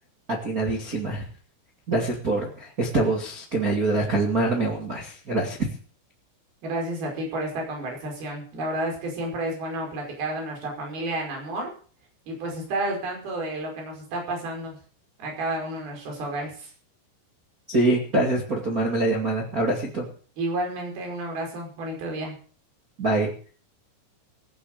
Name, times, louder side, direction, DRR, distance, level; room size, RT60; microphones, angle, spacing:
voice 1, 0.3-1.2 1.9-5.6 17.7-20.1 23.0-23.3, right 2 dB, 65° right, -1 dB, 0.8 m, -24 dB
voice 2, 6.6-11.7 12.3-14.8 15.2-16.7 20.4-22.4, right 1 dB, 50° right, 1 dB, 7.0 m, -31 dB
17.5 x 9.9 x 6.6 m, 0.42 s
omnidirectional pair, 6.0 m